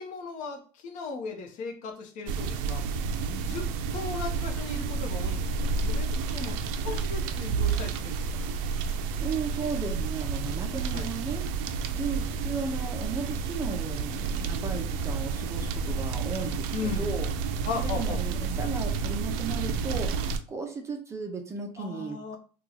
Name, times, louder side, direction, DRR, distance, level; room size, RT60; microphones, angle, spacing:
voice 1, 0.0-3.0 3.4-8.4 10.9-11.1 16.7-17.1 17.6-18.2 21.8-22.4, left 4 dB, 55° left, 4 dB, 0.8 m, -37 dB
sound 1, 2.3-20.4, right 5 dB, 65° right, 0.4 m, -30 dB
voice 2, 8.9-11.4 11.9-17.3 17.7-22.4, right 4 dB, 20° right, 4 dB, 0.6 m, -35 dB
2.8 x 2.3 x 3.9 m, 0.38 s
cardioid pair, 130°, 15 cm